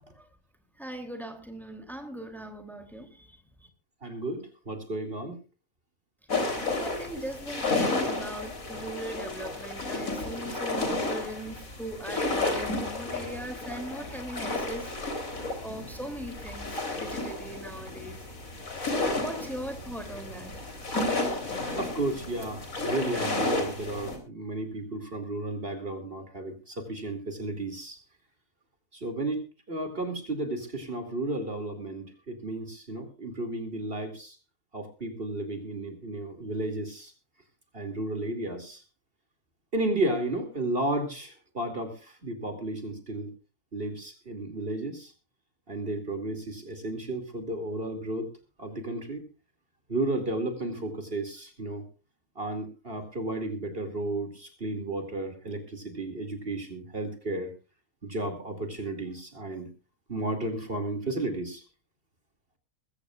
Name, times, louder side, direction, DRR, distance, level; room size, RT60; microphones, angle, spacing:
voice 1, 0.8-3.7 6.8-14.9 15.6-18.2 18.8-20.6, right 1 dB, ahead, 6 dB, 2.8 m, -39 dB
voice 2, 4.0-5.4 21.8-28.0 28.9-34.4 34.7-37.1 37.7-38.8 39.7-43.3 43.7-45.1 45.7-48.3 48.6-49.2 49.9-51.8 52.4-57.5 58.0-59.7 60.1-61.6, right 2 dB, 45° right, 7 dB, 2.7 m, -33 dB
sound 1, 6.3-24.2, left 2 dB, 85° left, 4.0 m, -32 dB
21.5 x 15.5 x 2.4 m, 0.32 s
omnidirectional pair, 1.4 m